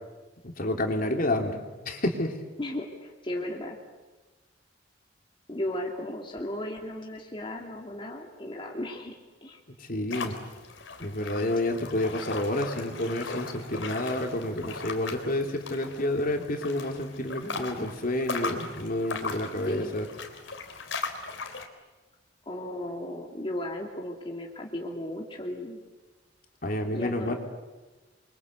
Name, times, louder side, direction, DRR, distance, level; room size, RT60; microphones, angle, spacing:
voice 1, 0.4-1.6 1.8-2.4 9.8-10.4 11.0-20.1 26.6-27.3, left 1 dB, 50° left, 3 dB, 3.3 m, -29 dB
voice 2, 2.6-3.8 5.5-9.1 9.4-9.6 19.6-19.9 22.5-25.8 26.9-27.3, left 1 dB, 25° left, 0 dB, 2.6 m, -35 dB
sound 1, 10.1-21.7, left 4 dB, 80° left, 3.5 m, -38 dB
29.0 x 24.0 x 8.2 m, 1.2 s
head